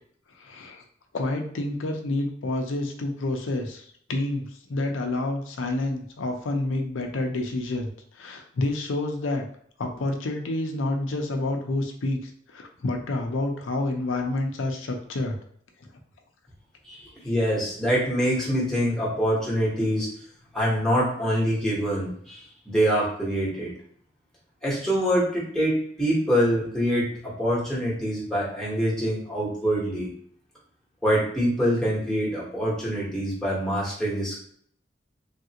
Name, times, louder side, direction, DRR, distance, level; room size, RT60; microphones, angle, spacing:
voice 1, 0.4-0.8 1.1-9.5 9.8-15.4, left 2 dB, 90° left, 3 dB, 0.6 m, -29 dB
voice 2, 16.8-20.1 20.5-23.7 24.6-30.1 31.0-34.4, equal, ahead, -6 dB, 1.0 m, -25 dB
3.2 x 2.4 x 2.8 m, 0.63 s
head